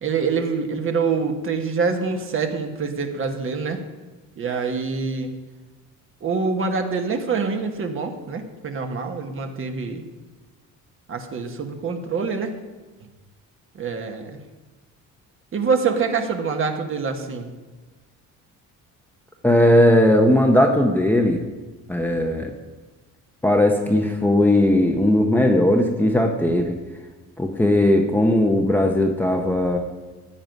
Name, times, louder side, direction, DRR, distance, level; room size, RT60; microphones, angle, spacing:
voice 1, 0.0-3.8 4.4-5.3 6.2-10.0 11.1-12.5 13.7-14.4 15.5-17.5, right 5 dB, 40° right, 5 dB, 1.3 m, -25 dB
voice 2, 19.4-21.4 21.9-22.5 23.4-26.8 27.4-29.8, left 1 dB, 5° left, 2 dB, 0.7 m, -18 dB
14.0 x 9.5 x 5.3 m, 1.3 s
cardioid pair, 155°, 32 cm